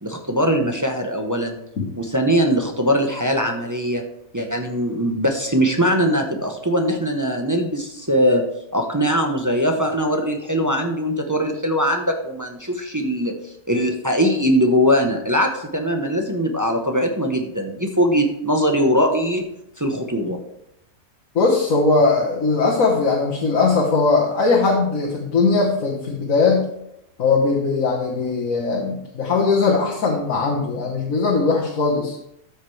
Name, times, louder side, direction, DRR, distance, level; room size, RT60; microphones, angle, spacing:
voice 1, 0.0-1.6 2.0-4.0 4.3-8.4 8.7-19.4 19.8-20.4, equal, 15° right, 2 dB, 0.6 m, -21 dB
voice 2, 21.4-26.7 27.2-32.2, left 4 dB, 60° left, -3 dB, 1.7 m, -19 dB
13.0 x 6.6 x 3.2 m, 0.80 s
omnidirectional pair, 1.6 m